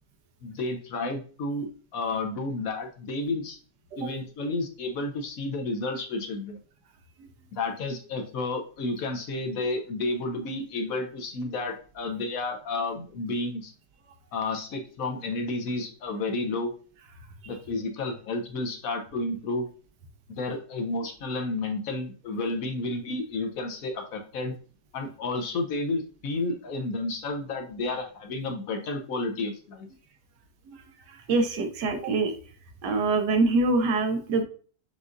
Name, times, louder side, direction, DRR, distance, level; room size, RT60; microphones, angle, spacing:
voice 1, 0.4-3.6 4.0-6.6 7.5-13.7 14.3-16.7 17.5-19.7 20.3-24.5 24.9-29.9, left 2 dB, 65° left, 3 dB, 1.1 m, -31 dB
voice 2, 31.1-32.3 32.8-34.4, right 3 dB, 90° right, 5 dB, 1.4 m, -24 dB
6.9 x 2.5 x 2.5 m, 0.41 s
omnidirectional pair, 1.7 m